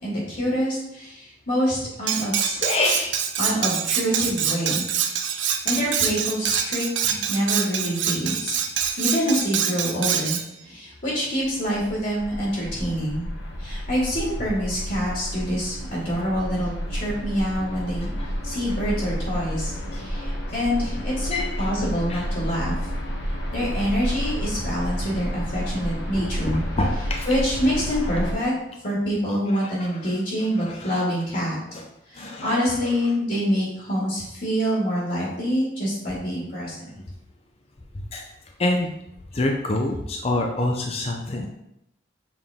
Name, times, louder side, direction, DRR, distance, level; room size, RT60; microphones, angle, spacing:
voice 1, 0.0-2.6 3.4-4.9 5.2-8.6 9.0-13.3 13.6-18.1 18.4-22.8 23.5-28.5 28.8-31.6 32.1-36.8, equal, 50° left, -5 dB, 2.1 m, -26 dB
Cutlery silverware, 2.1-10.4, right 8 dB, 75° right, 0.6 m, -25 dB
voice 2, 2.6-3.2 8.8-8.9 18.2-18.3 19.9-20.2 21.3-21.7 22.1-22.2 26.1-27.3 29.3-29.9 30.6-31.0 31.7-31.8 32.2-32.9 38.1-38.3 38.6-38.9 39.3-41.5, left 2 dB, 30° left, 2 dB, 0.5 m, -27 dB
sound 1, 11.4-28.3, equal, 70° left, 1.1 m, -30 dB
7.0 x 3.8 x 3.5 m, 0.81 s
head